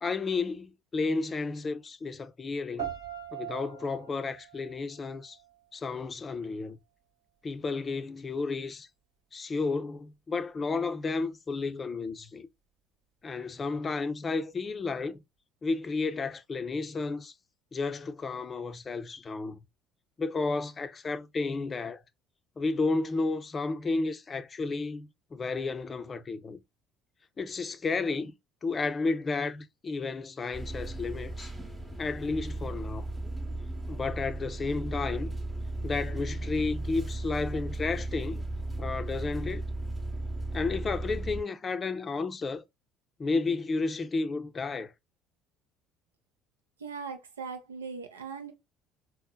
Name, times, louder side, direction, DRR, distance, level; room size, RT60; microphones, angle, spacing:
voice 1, 0.0-2.9 3.3-5.4 5.7-6.8 7.4-8.9 9.3-12.5 13.2-15.2 15.6-17.3 17.7-19.6 20.2-22.0 22.6-26.6 27.4-28.3 28.6-31.5 32.0-33.1 33.9-35.3 35.8-38.5 38.8-39.6 40.5-42.6 43.2-44.9, left 3 dB, 35° left, 0.4 m, -32 dB
sound 1, 2.8-5.8, right 11 dB, 70° right, 1.1 m, -41 dB
sound 2, 30.5-41.4, right 2 dB, 15° right, 0.8 m, -35 dB
voice 2, 46.8-48.5, right 5 dB, 85° right, 0.5 m, -39 dB
4.2 x 2.0 x 2.2 m
hypercardioid pair, 60°, 0 cm